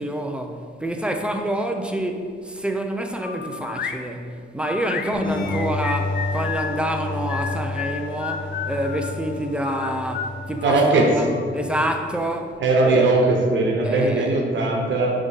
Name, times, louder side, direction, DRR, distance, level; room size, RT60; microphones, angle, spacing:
voice 1, 0.0-10.8 11.1-11.2 11.5-13.1 13.8-14.3, right 1 dB, 5° right, 4 dB, 0.5 m, -27 dB
sound 1, 3.2-4.0 4.7-6.7 7.3-9.1 9.6-11.5, left 7 dB, 55° left, 0.4 m, -32 dB
sound 2, 5.1-12.6, left 2 dB, 80° left, 1.2 m, -31 dB
voice 2, 10.6-11.0 12.6-15.2, right 3 dB, 75° right, 0 dB, 1.0 m, -19 dB
8.9 x 3.6 x 4.0 m, 2.1 s
wide cardioid pair, 135°, 20 cm